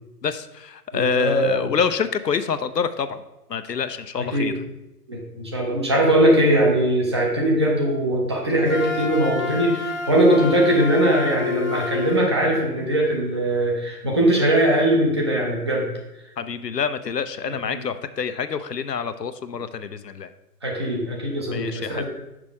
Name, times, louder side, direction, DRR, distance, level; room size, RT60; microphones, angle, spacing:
voice 1, 0.2-3.2 3.5-4.5 16.4-20.3 21.5-22.0, left 6 dB, 85° left, 11 dB, 0.6 m, -26 dB
voice 2, 0.9-1.7 4.2-4.5 5.1-15.9 17.4-17.8 20.6-22.0, right 1 dB, 20° right, -2 dB, 0.6 m, -20 dB
Wind instrument woodwind instrument, 8.7-12.4, left 4 dB, 45° left, 0.7 m, -29 dB
6.1 x 5.0 x 4.5 m, 0.94 s
figure-of-eight pair, 130°, 48 cm